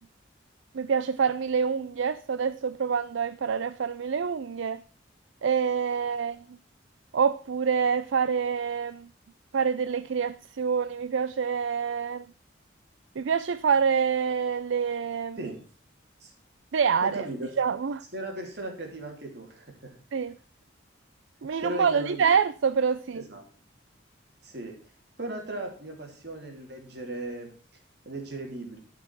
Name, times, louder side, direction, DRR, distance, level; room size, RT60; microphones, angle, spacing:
voice 1, 0.7-4.8 5.4-6.4 7.1-9.1 9.5-12.2 13.2-15.4 16.7-17.3 17.6-18.0 20.1-20.3 21.4-23.2, right 6 dB, 75° right, 0.4 m, -26 dB
voice 2, 17.0-17.5 18.1-20.0 21.6-22.3 23.1-23.4 24.4-24.7 25.2-27.5 28.0-28.8, right 1 dB, 55° right, 3.1 m, -37 dB
13.0 x 6.0 x 6.0 m
head